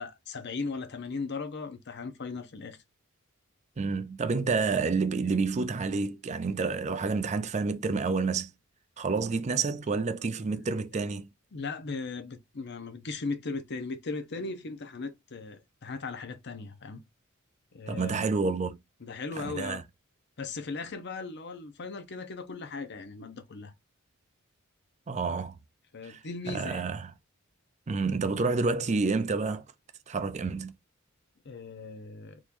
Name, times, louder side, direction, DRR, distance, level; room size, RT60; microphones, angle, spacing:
voice 1, 0.0-2.8 10.5-10.6 11.5-17.0 17.7-18.3 19.0-19.8 20.4-23.7 25.9-26.9 31.4-32.4, left 4 dB, 55° left, 0.7 m, -38 dB
voice 2, 3.8-8.5 9.0-11.3 17.9-18.8 19.4-19.8 25.1-25.6 26.0-26.2 26.5-27.1 27.9-29.7 30.1-30.7, right 4 dB, 35° right, 0.4 m, -29 dB
3.7 x 3.0 x 2.5 m
head